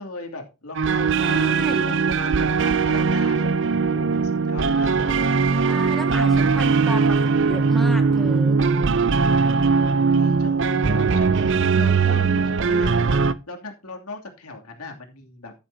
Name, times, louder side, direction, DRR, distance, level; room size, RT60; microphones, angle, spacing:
voice 1, 0.0-5.2 6.1-6.5 9.6-15.5, left 2 dB, 90° left, 3 dB, 2.8 m, -38 dB
sound 1, 0.7-13.3, right 5 dB, 55° right, 0.5 m, -20 dB
voice 2, 1.2-1.9 5.6-8.6, equal, ahead, 4 dB, 1.7 m, -33 dB
12.0 x 10.5 x 2.8 m, 0.29 s
head